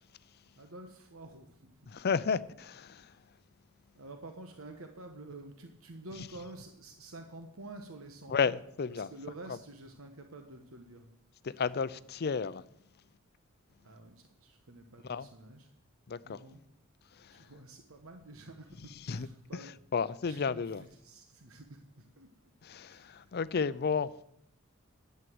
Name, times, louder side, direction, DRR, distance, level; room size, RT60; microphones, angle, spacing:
voice 1, 0.6-1.9 3.0-3.2 3.9-8.5 9.1-11.1 13.8-15.7 16.2-16.6 17.3-19.7 20.2-20.6 21.0-22.5 22.9-23.3, right 2 dB, 85° right, 1.2 m, -49 dB
voice 2, 1.9-3.2 6.2-6.3 8.3-9.1 9.5-9.6 11.4-12.6 15.0-15.3 16.1-16.4 17.1-17.5 18.9-20.9 22.6-24.2, left 5 dB, 50° left, 0.5 m, -33 dB
11.0 x 8.2 x 7.8 m
head